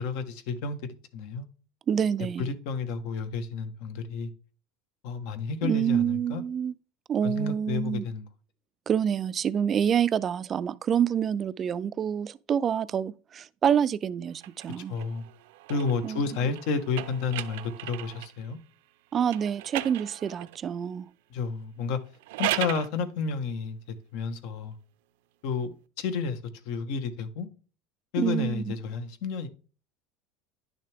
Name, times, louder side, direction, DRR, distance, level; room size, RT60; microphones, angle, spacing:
voice 1, 0.0-1.5 2.4-4.3 5.0-6.4 7.2-8.3 14.8-15.2 15.7-18.6 21.3-22.0 22.4-24.7 25.4-26.4 26.6-27.5 28.1-29.5, left 5 dB, 65° left, 1.3 m, -31 dB
voice 2, 1.9-2.5 5.6-6.7 7.1-8.0 8.9-15.0 16.0-16.2 19.1-21.1 28.2-28.6, right 8 dB, 30° right, 0.4 m, -27 dB
sound 1, 14.4-18.4 19.3-20.6 22.1-22.9, right 16 dB, 85° right, 0.6 m, -36 dB
10.5 x 6.5 x 3.5 m
supercardioid pair, 150°, 0 cm